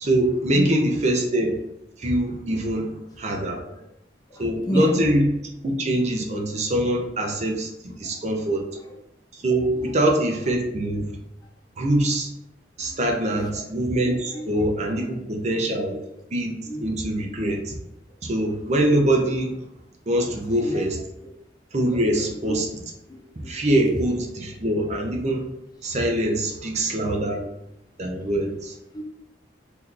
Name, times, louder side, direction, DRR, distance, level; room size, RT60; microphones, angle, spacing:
voice 1, 0.0-1.5 2.0-3.6 4.4-5.3 5.6-8.6 9.3-11.1 11.8-12.3 12.8-15.9 16.3-16.5 16.8-17.7 18.2-19.5 20.1-21.0 21.7-22.7 23.5-25.5 25.8-27.4 28.0-28.8, right 1 dB, 40° right, 1 dB, 0.5 m, -23 dB
voice 2, 4.3-5.0 7.8-8.0 12.8-13.0 13.3-13.7 14.3-14.5 15.0-15.2 15.7-15.9 16.7-16.9 20.5-20.9 21.2-21.3 21.9-22.6 23.1-23.6 24.3-24.4 26.2-26.7 27.3-27.4 28.1-28.3 28.9-29.1, equal, 20° left, 2 dB, 0.4 m, -32 dB
2.8 x 2.4 x 3.7 m, 0.85 s
head